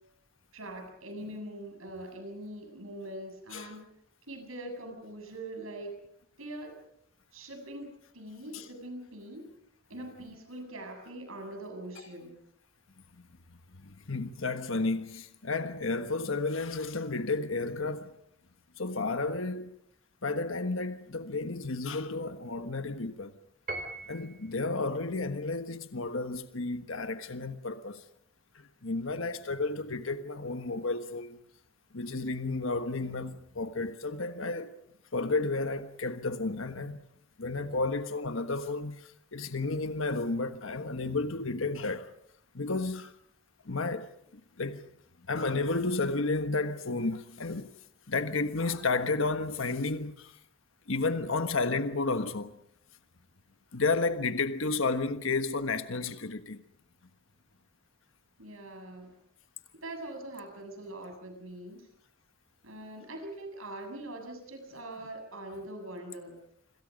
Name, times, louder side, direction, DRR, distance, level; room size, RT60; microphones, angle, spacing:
voice 1, 0.5-3.9 4.3-5.9 6.4-6.7 7.3-9.5 9.9-12.4 58.4-59.1 59.7-61.9 62.6-66.4, right 1 dB, 80° right, 7.6 m, -42 dB
voice 2, 13.8-18.1 18.8-19.7 20.2-23.3 24.1-28.0 28.5-31.4 31.9-34.8 35.1-37.0 37.4-42.1 42.5-43.1 43.6-44.1 44.6-44.8 45.3-47.7 48.1-50.4 50.9-52.5 53.7-56.6, left 3 dB, 70° left, 1.4 m, -32 dB
Piano, 23.7-24.6, right 2 dB, 40° right, 3.6 m, -39 dB
27.0 x 26.5 x 5.3 m
head